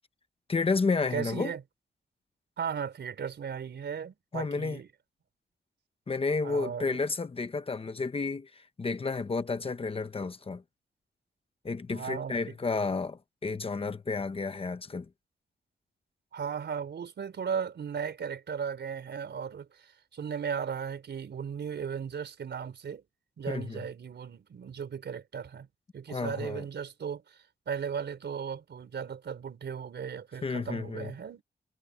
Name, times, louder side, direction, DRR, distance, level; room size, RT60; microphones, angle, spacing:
voice 1, 0.5-1.5 4.3-4.8 6.1-10.6 11.6-15.1 23.5-23.8 26.1-26.6 30.4-31.1, left 4 dB, 30° left, 1.0 m, -31 dB
voice 2, 1.1-1.6 2.6-4.9 6.4-7.0 11.9-12.6 16.3-23.0 23.4-25.7 25.9-27.4 27.7-31.4, right 7 dB, 75° right, 4.5 m, -36 dB
wide cardioid pair, 155°, 18 cm